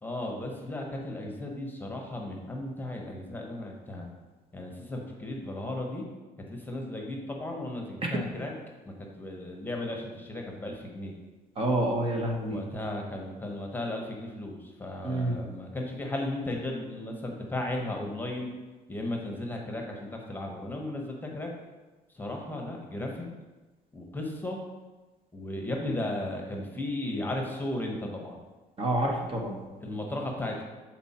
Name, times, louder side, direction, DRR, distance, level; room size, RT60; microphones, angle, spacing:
voice 1, 0.0-4.1 4.5-6.0 6.5-8.5 8.8-11.2 12.5-18.5 18.9-21.5 22.1-23.2 23.9-24.6 25.3-28.4 29.8-30.6, left 1 dB, 10° left, 0 dB, 1.1 m, -35 dB
voice 2, 11.6-12.6 15.0-15.4 28.8-29.6, right 1 dB, 35° right, 0 dB, 1.1 m, -28 dB
7.1 x 4.3 x 4.3 m, 1.2 s
cardioid pair, 110°, 17 cm